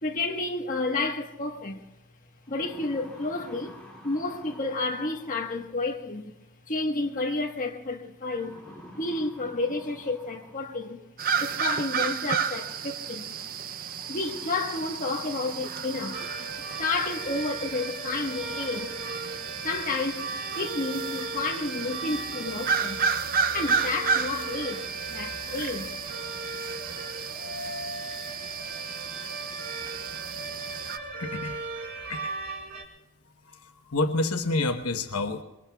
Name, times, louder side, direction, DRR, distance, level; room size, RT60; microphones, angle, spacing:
voice 1, 0.0-1.8 2.5-3.8 4.0-6.3 6.7-8.6 9.0-11.0 11.4-13.3 14.1-16.2 16.8-18.9 19.6-20.2 20.5-23.0 23.5-25.9, left 3 dB, 35° left, 1.4 m, -31 dB
sound 1, 1.7-1.8 2.3-5.7 7.1-7.5 8.3-11.1 12.3-12.4 14.0-16.8 17.3-17.4 18.0-18.1 18.3-18.8, equal, 5° left, 2.7 m, -50 dB
sound 2, 11.2-31.0, right 6 dB, 40° right, 0.6 m, -32 dB
sound 3, 16.1-32.8, right 2 dB, 85° right, 4.5 m, -37 dB
voice 2, 31.2-31.6 32.1-32.3 33.5-35.4, left 2 dB, 85° left, 1.0 m, -28 dB
26.5 x 23.0 x 2.3 m
head